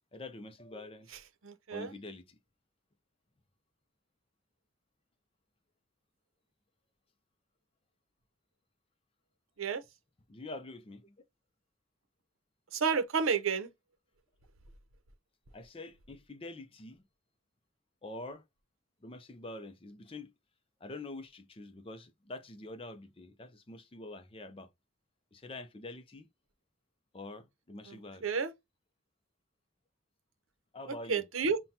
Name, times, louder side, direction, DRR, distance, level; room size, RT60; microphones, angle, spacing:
voice 1, 0.1-1.1 1.7-2.4 10.3-11.2 15.5-17.0 18.0-18.4 19.0-20.3 20.8-24.7 25.3-26.3 27.1-28.3 30.7-31.2, left 2 dB, 25° left, 0.5 m, -46 dB
voice 2, 1.4-1.9 9.6-9.8 12.7-13.7 27.9-28.5 31.1-31.6, right 5 dB, 85° right, 0.7 m, -31 dB
5.6 x 2.2 x 2.8 m
head